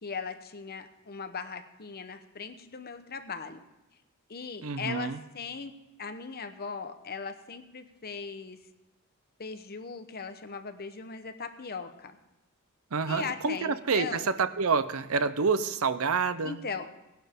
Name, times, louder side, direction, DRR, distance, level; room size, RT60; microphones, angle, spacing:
voice 1, 0.0-3.6 4.3-5.7 6.0-8.6 9.4-12.2 13.1-14.3 16.4-17.0, left 5 dB, 45° left, 8 dB, 1.0 m, -39 dB
voice 2, 4.6-5.2 12.9-16.6, right 5 dB, 70° right, 13 dB, 0.7 m, -28 dB
18.0 x 11.5 x 3.7 m, 0.98 s
head